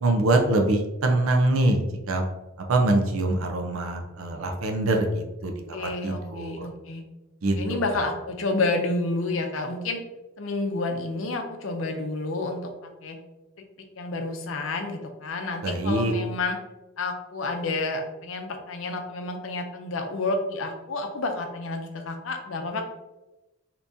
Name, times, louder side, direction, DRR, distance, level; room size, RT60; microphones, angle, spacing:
voice 1, 0.0-2.2 2.6-6.7 7.4-7.5 7.9-8.1 15.6-16.1, right 2 dB, 85° right, 4 dB, 0.6 m, -24 dB
voice 2, 5.7-7.0 7.5-10.0 10.4-13.2 14.0-16.6 17.0-22.8, left 2 dB, 70° left, 4 dB, 0.6 m, -30 dB
3.5 x 2.9 x 2.6 m, 1.0 s
head